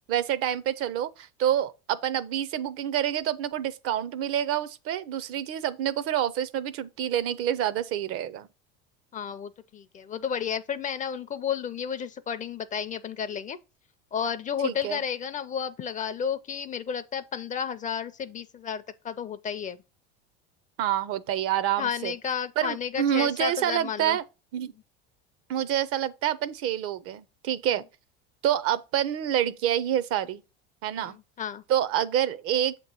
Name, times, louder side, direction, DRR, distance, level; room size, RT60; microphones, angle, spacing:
voice 1, 0.0-8.5 14.6-15.0 20.8-22.1 22.6-24.2 24.5-24.7 25.5-27.8 28.4-30.4 30.8-31.2 31.7-32.8, right 11 dB, 50° right, 0.6 m, -27 dB
voice 2, 9.1-13.6 14.1-19.8 21.8-24.2 31.0-31.6, left 7 dB, 25° left, 0.4 m, -32 dB
7.1 x 3.0 x 5.3 m
supercardioid pair, 110°, 29 cm